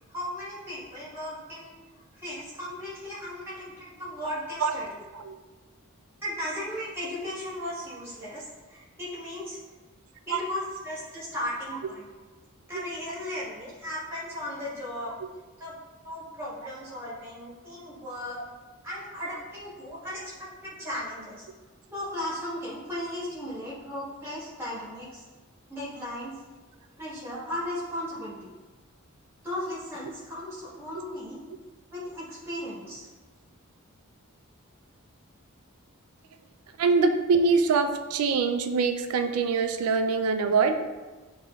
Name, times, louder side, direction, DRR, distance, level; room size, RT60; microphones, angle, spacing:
voice 1, 0.0-1.7 2.1-5.0 6.2-9.6 10.3-12.0 12.7-15.1 15.6-15.7 16.0-18.4 18.8-21.4 21.9-25.2 25.7-26.3 27.0-28.5 29.4-31.4 31.9-33.1, left 1 dB, 10° right, -8 dB, 1.4 m, -36 dB
voice 2, 36.8-40.7, right 4 dB, 85° right, 7 dB, 0.4 m, -24 dB
6.5 x 3.0 x 2.4 m, 1.3 s
head